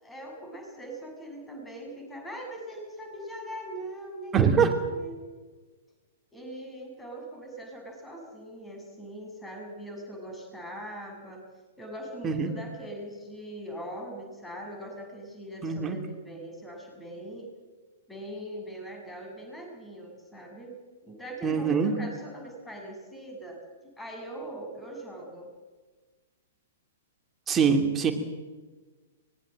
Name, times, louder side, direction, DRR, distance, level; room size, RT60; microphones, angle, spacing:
voice 1, 0.0-5.2 6.3-11.4 11.8-17.5 18.1-25.5, right 1 dB, 10° left, 2 dB, 7.0 m, -41 dB
voice 2, 4.3-4.7 12.2-12.5 15.6-16.0 21.4-22.0 27.5-28.1, right 6 dB, 20° right, 5 dB, 2.9 m, -23 dB
24.0 x 21.5 x 7.8 m, 1.3 s
figure-of-eight pair, 110°, 0 cm